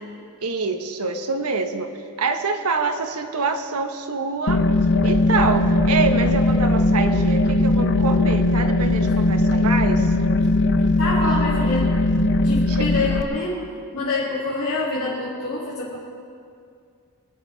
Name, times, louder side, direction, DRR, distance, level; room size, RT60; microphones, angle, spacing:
voice 1, 0.4-1.9 2.2-4.6 5.0-10.1 12.7-12.9, right 4 dB, 80° right, 5 dB, 1.3 m, -25 dB
sound 1, 4.5-13.2, left 2 dB, 55° left, 0.7 m, -19 dB
voice 2, 11.0-11.9 12.4-16.0, left 2 dB, 80° left, -8 dB, 2.7 m, -26 dB
24.5 x 10.0 x 4.7 m, 2.3 s
head